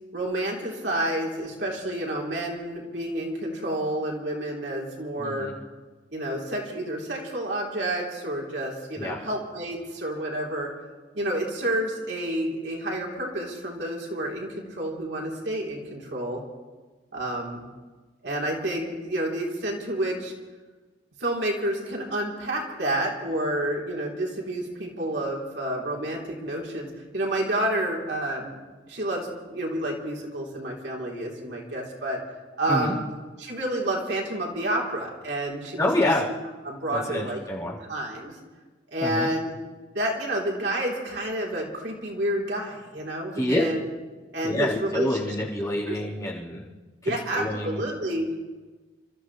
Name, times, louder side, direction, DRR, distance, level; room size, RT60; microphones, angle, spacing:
voice 1, 0.1-5.5 6.1-10.7 11.1-16.4 17.1-17.6 18.2-20.3 21.2-26.9 27.1-28.6 28.9-32.2 32.6-33.0 33.4-35.9 36.6-37.4 37.9-38.3 38.9-39.5 39.9-43.9 44.3-45.3 45.9-46.0 47.0-48.3, right 1 dB, 70° right, -2 dB, 3.5 m, -29 dB
voice 2, 5.2-5.5 9.0-9.2 32.7-32.9 35.8-36.2 36.9-37.8 39.0-39.3 43.4-43.6 44.4-46.6 47.0-47.8, left 1 dB, 20° left, -7 dB, 4.0 m, -27 dB
29.5 x 14.0 x 3.2 m, 1.3 s
head